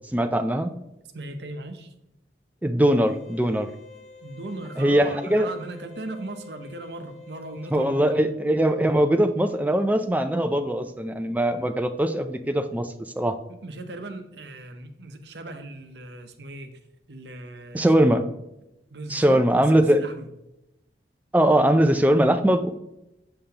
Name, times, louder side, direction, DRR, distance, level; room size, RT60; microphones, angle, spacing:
voice 1, 0.1-0.7 2.6-3.7 4.8-5.5 7.7-13.3 17.7-18.2 19.1-20.0 21.3-22.7, right 1 dB, 10° right, 7 dB, 0.4 m, -21 dB
voice 2, 1.1-1.9 4.2-8.2 13.5-16.7 17.1-17.9 18.9-20.3, right 2 dB, 70° right, 6 dB, 0.8 m, -38 dB
sound 1, 3.0-8.1, left 3 dB, 40° left, 0.8 m, -47 dB
6.7 x 5.6 x 2.9 m, 0.87 s
head